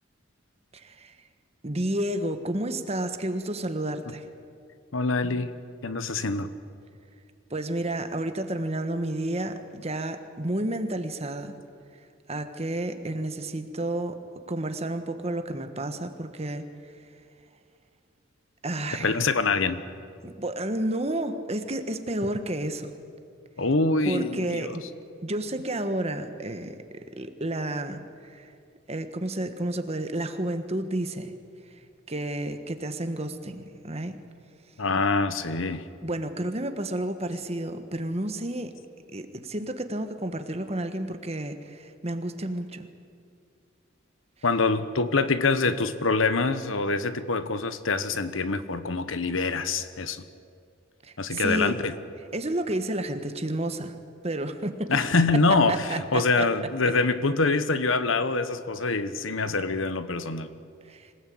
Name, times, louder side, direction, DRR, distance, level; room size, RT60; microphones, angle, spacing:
voice 1, 0.7-1.1 1.6-4.3 7.5-11.5 12.3-14.2 14.5-16.7 18.6-19.2 20.2-22.9 24.0-24.9 25.2-26.7 27.2-28.5 28.9-31.3 32.1-34.2 36.0-38.7 39.1-42.9 51.0-51.8 52.3-53.9 54.2-55.0 55.7-56.5 60.9-61.1, right 1 dB, 30° right, 8 dB, 1.4 m, -31 dB
voice 2, 4.9-5.5 5.8-6.5 19.0-19.8 23.6-24.8 34.8-35.9 44.4-50.2 51.2-51.9 54.9-60.5, left 3 dB, 85° left, 12 dB, 1.2 m, -25 dB
25.5 x 17.0 x 8.6 m, 2.4 s
head